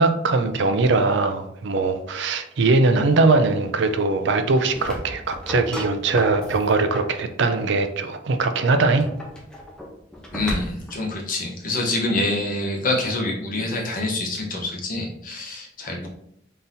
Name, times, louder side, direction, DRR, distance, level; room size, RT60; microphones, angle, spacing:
voice 1, 0.0-9.1, right 3 dB, 70° right, 8 dB, 0.5 m, -21 dB
sound 1, 4.5-7.2 8.8-11.0, equal, 5° left, 0.7 m, -35 dB
voice 2, 10.3-16.1, left 2 dB, 50° left, 0 dB, 1.0 m, -26 dB
4.0 x 3.8 x 2.7 m, 0.72 s
head